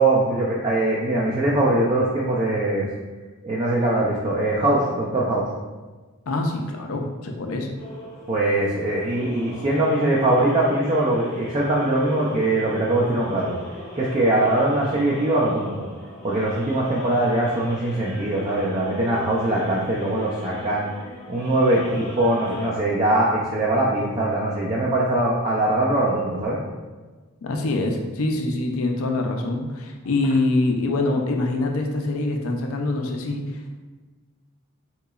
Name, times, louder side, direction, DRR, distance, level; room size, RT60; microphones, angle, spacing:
voice 1, 0.0-2.8 3.4-5.5 8.3-13.6 14.0-15.8 16.2-20.9 21.3-26.6, right 1 dB, 25° right, -5 dB, 0.4 m, -22 dB
voice 2, 6.3-7.7 27.4-33.4, left 2 dB, 75° left, 3 dB, 0.5 m, -24 dB
sound 1, 7.8-22.7, left 1 dB, 15° left, 0.7 m, -39 dB
3.8 x 2.9 x 2.3 m, 1.3 s
head